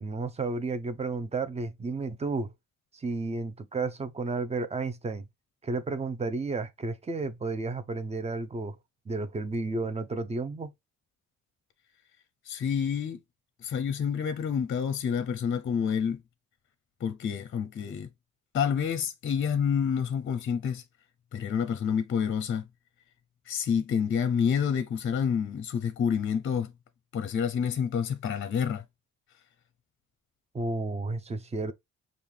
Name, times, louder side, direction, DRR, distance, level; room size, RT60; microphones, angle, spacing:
voice 1, 0.0-2.5 2.9-5.2 5.6-8.8 9.1-10.7 30.5-31.7, right 3 dB, 20° right, 0.7 m, -32 dB
voice 2, 12.5-13.2 13.6-16.2 17.0-18.1 18.5-20.8 21.3-22.7 23.5-26.7 27.1-28.8, left 7 dB, 40° left, 0.6 m, -28 dB
5.5 x 2.6 x 3.3 m
cardioid pair, 90°, 30 cm